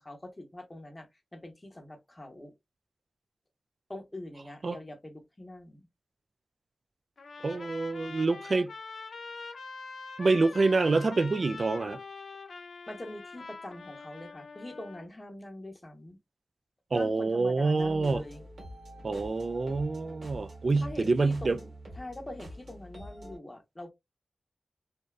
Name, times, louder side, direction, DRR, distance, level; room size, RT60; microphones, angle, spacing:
voice 1, 0.0-2.5 3.9-5.8 12.9-16.2 16.9-18.4 20.8-21.7 21.9-23.9, left 1 dB, 25° left, 0.7 m, -44 dB
Trumpet, 7.2-15.1, left 4 dB, 85° left, 0.5 m, -44 dB
voice 2, 7.4-8.7 10.2-12.0 16.9-18.2 19.0-21.6, right 3 dB, 60° right, 0.3 m, -27 dB
sound 1, 17.8-23.4, equal, 85° right, 1.1 m, -46 dB
2.6 x 2.1 x 2.3 m
wide cardioid pair, 60°, 0 cm